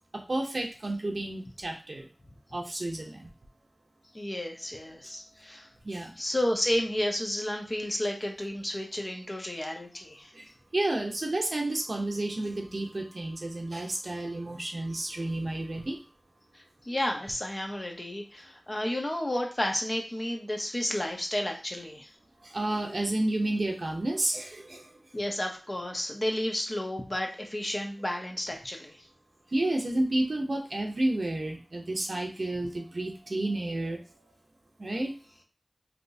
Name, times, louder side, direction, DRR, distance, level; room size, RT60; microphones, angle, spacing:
voice 1, 0.3-2.1 2.5-3.3 5.8-6.1 10.3-10.5 10.7-16.0 22.4-24.9 29.5-34.0 34.8-35.1, right 1 dB, 65° right, 1 dB, 0.6 m, -31 dB
voice 2, 4.1-5.7 6.2-10.3 16.5-22.1 25.1-29.0, left 1 dB, 40° left, 2 dB, 0.8 m, -32 dB
3.3 x 2.7 x 2.6 m, 0.35 s
wide cardioid pair, 45°, 0 cm